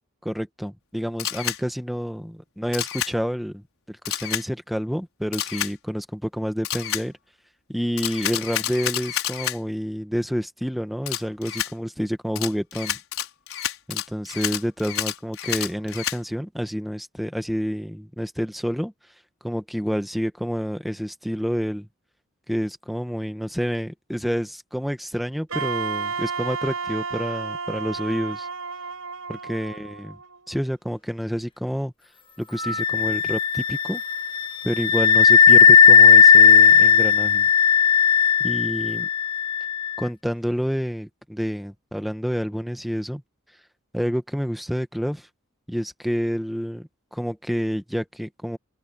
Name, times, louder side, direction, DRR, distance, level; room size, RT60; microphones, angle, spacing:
voice 1, 0.2-7.1 7.7-13.0 13.9-18.9 19.4-21.9 22.5-28.5 29.3-30.2 30.5-31.9 32.4-34.0 34.6-37.5 38.4-39.1 40.0-43.2 43.9-45.3 45.7-48.6, equal, ahead, 1.2 m, -28 dB
Camera, 1.2-1.6 2.7-3.1 4.1-4.4 5.3-5.7 6.6-7.0 8.0-9.6 11.1-11.7 12.4-16.2, left 11 dB, 75° left, 5.4 m, -29 dB
Wind instrument woodwind instrument, 25.5-30.5, right 5 dB, 80° right, 5.4 m, -32 dB
Wind instrument woodwind instrument 2, 32.6-40.0, left 6 dB, 25° left, 1.5 m, -16 dB
open air
head